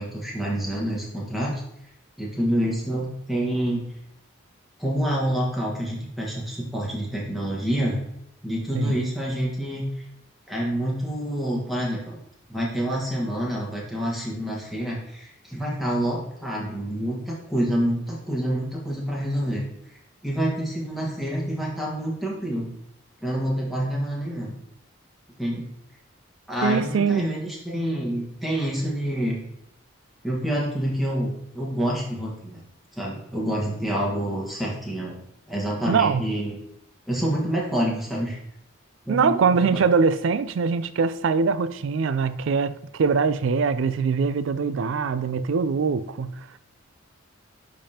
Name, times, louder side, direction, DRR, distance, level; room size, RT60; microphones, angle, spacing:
voice 1, 0.0-1.5 2.2-3.9 4.8-8.0 8.4-9.9 10.5-12.2 12.5-19.7 20.2-22.7 23.2-24.5 25.4-25.7 26.5-29.4 30.2-32.6 32.9-35.2 35.5-36.6 37.1-38.4 39.1-39.8, equal, ahead, 1.3 m, -27 dB
voice 2, 26.6-27.3 35.9-36.2 39.1-46.5, right 5 dB, 70° right, 0.3 m, -23 dB
10.0 x 3.5 x 2.8 m
head